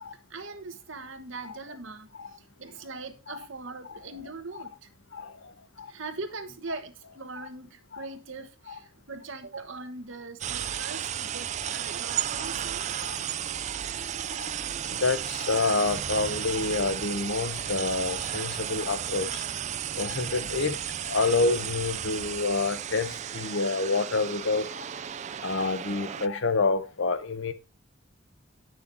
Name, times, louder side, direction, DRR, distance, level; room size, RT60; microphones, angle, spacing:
voice 1, 0.3-4.9 5.9-12.9, right 3 dB, 65° right, 1.2 m, -41 dB
voice 2, 5.1-5.5 5.8-5.9 7.9-8.1 8.7-8.8 12.4-12.5 13.0-13.1 14.4-14.5 14.9-19.4 19.9-20.8 21.1-24.8 25.4-27.5, left 3 dB, 65° left, 0.9 m, -28 dB
sound 1, 10.4-26.3, right 9 dB, 35° right, 0.3 m, -34 dB
8.4 x 6.3 x 4.0 m
head